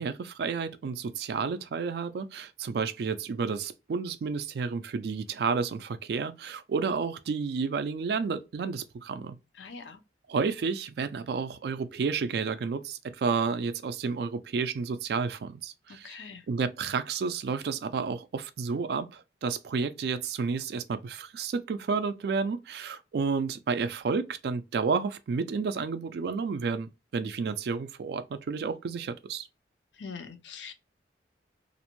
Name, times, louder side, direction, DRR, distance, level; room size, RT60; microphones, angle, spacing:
voice 1, 0.0-9.4 10.3-16.2 16.5-29.5, right 5 dB, 60° right, 0.3 m, -31 dB
voice 2, 9.5-10.0 15.9-16.5 29.9-30.7, left 5 dB, 75° left, 0.5 m, -43 dB
2.5 x 2.1 x 2.9 m
head